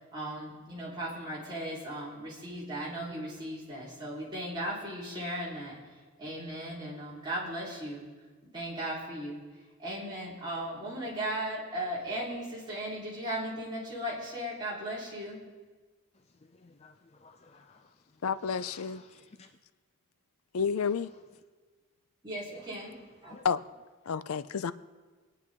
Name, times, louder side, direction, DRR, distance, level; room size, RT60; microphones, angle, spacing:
voice 1, 0.1-5.8 6.2-8.1 8.5-9.4 9.8-15.4 22.2-22.9 23.2-23.3, right 1 dB, 20° right, 3.9 m, -37 dB
voice 2, 16.5-17.9 18.4-19.5 22.5-22.7 23.3-23.4, left 4 dB, 30° left, 0.4 m, -55 dB
voice 3, 18.2-19.0 20.5-21.1 23.4-23.6 24.1-24.7, left 6 dB, 85° left, 0.5 m, -30 dB
25.5 x 9.9 x 3.7 m
head